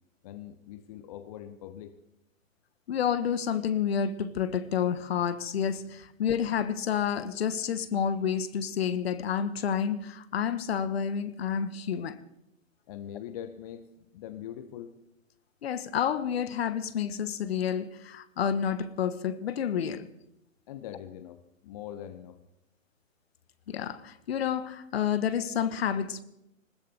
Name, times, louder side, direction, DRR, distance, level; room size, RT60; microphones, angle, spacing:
voice 1, 0.2-2.0 12.9-15.0 20.7-22.4, left 10 dB, 30° left, 0.8 m, -42 dB
voice 2, 2.9-12.2 15.6-20.1 23.7-26.2, left 8 dB, 50° left, 1.2 m, -29 dB
20.0 x 19.5 x 3.4 m
figure-of-eight pair, 130°, 40 cm